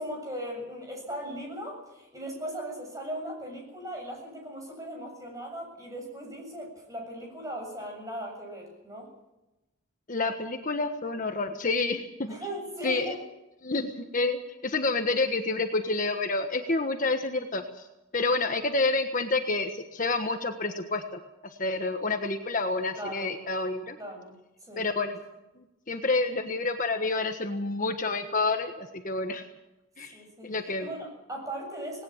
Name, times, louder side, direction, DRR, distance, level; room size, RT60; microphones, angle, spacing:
voice 1, 0.0-9.1 12.3-13.2 22.9-23.3 24.0-24.3 24.7-24.9 30.1-32.0, equal, 15° right, 1 dB, 7.4 m, -38 dB
voice 2, 10.1-12.3 12.8-13.1 13.6-17.6 18.1-21.2 21.6-24.0 24.8-25.2 25.6-29.4 30.0-30.1 30.4-30.9, left 3 dB, 40° left, 5 dB, 1.4 m, -28 dB
19.0 x 18.5 x 7.4 m, 0.98 s
head